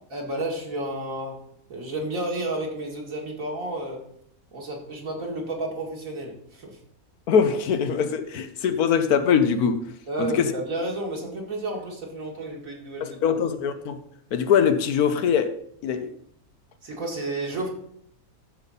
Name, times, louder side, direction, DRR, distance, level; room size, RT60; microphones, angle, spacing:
voice 1, 0.1-1.4 1.7-4.1 4.5-6.8 10.1-13.3 16.8-17.7, right 1 dB, 65° right, 2.6 m, -31 dB
voice 2, 7.3-9.9 10.2-10.5 13.0-14.0 14.3-15.6 15.8-16.1, left 7 dB, 80° left, 1.3 m, -22 dB
14.0 x 5.3 x 4.2 m
omnidirectional pair, 1.6 m